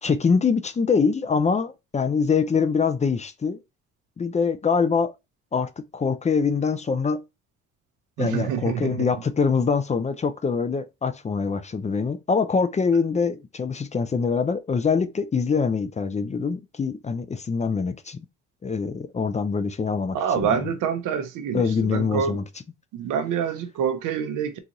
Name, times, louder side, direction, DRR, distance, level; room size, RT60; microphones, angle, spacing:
voice 1, 0.0-3.6 4.2-5.1 5.5-7.2 8.2-18.2 18.6-20.7 21.5-22.4, left 5 dB, 25° left, 0.4 m, -24 dB
voice 2, 8.2-9.1 20.1-22.4 22.9-24.6, right 7 dB, 90° right, 0.6 m, -26 dB
3.9 x 2.5 x 2.9 m
cardioid pair, 90°, 30 cm